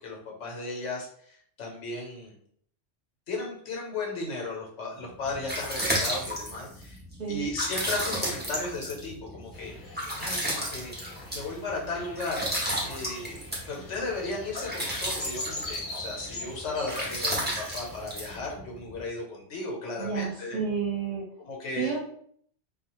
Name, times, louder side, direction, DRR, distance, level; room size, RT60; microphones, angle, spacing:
voice 1, 0.0-2.4 3.3-7.0 7.3-10.9 11.3-12.5 12.8-13.4 13.7-20.6 21.4-21.9, left 3 dB, 85° left, -2 dB, 1.2 m, -35 dB
sound 1, 5.0-19.0, equal, 10° right, 0.5 m, -33 dB
sound 2, 9.5-18.4, left 1 dB, 45° left, 0.8 m, -42 dB
voice 2, 20.0-21.2 21.7-22.0, right 6 dB, 45° right, -3 dB, 0.7 m, -30 dB
2.3 x 2.3 x 2.9 m, 0.62 s
omnidirectional pair, 1.2 m